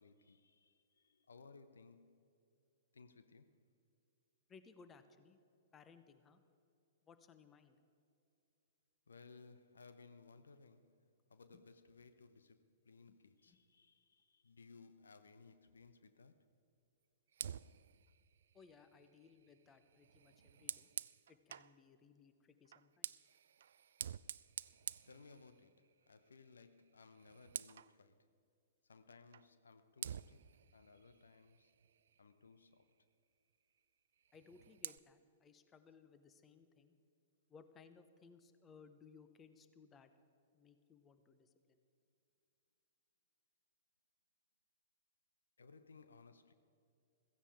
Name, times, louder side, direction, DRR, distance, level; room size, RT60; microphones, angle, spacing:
voice 1, 0.0-2.3 2.9-3.6 9.1-16.5 25.1-28.3 28.8-31.7 32.2-33.1 45.6-46.5, left 4 dB, 70° left, 0.8 m, -62 dB
voice 2, 4.5-5.4 5.7-6.4 7.0-7.8 13.5-13.6 18.5-20.9 21.3-23.2 34.3-36.9 37.5-40.1 40.5-41.8, left 5 dB, 20° left, 0.9 m, -63 dB
Fire, 17.3-21.8 22.7-25.9 26.3-26.5 26.9-28.0 29.3-29.5 30.0-32.3 34.2-35.0, right 9 dB, 60° right, 0.3 m, -50 dB
16.0 x 15.0 x 4.9 m
figure-of-eight pair, 110°, 0 cm